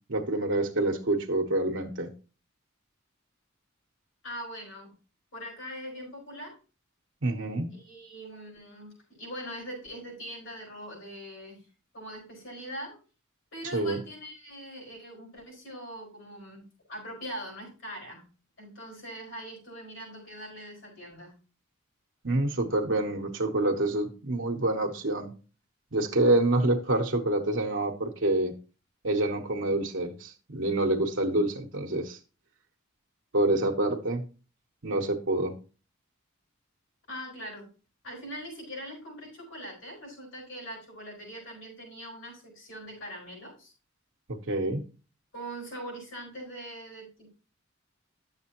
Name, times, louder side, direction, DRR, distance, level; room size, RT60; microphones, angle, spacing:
voice 1, 0.1-2.1 7.2-7.7 13.7-14.0 22.2-25.3 25.9-28.5 29.0-32.2 33.3-34.2 34.8-35.5 44.3-44.9, right 2 dB, 65° right, 2 dB, 1.0 m, -27 dB
voice 2, 4.2-4.9 5.3-6.5 7.7-11.6 11.9-13.0 13.5-18.2 18.6-21.3 37.1-37.7 38.0-43.7 45.3-47.3, equal, 70° left, -1 dB, 5.6 m, -42 dB
10.5 x 7.3 x 2.9 m, 0.34 s
head